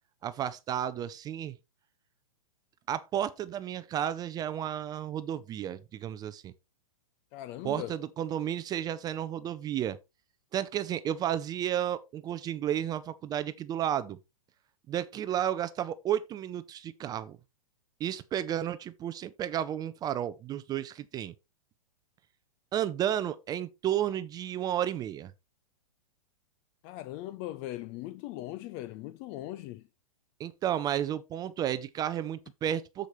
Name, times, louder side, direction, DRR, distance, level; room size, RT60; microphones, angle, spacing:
voice 1, 0.2-1.6 2.9-6.5 7.6-10.0 10.5-14.2 14.9-17.4 18.0-21.3 22.7-25.3 30.4-33.1, right 10 dB, 20° right, 0.5 m, -32 dB
voice 2, 7.3-7.9 26.8-29.8, left 15 dB, 35° left, 0.5 m, -39 dB
13.5 x 5.0 x 3.0 m
hypercardioid pair, 125°, 18 cm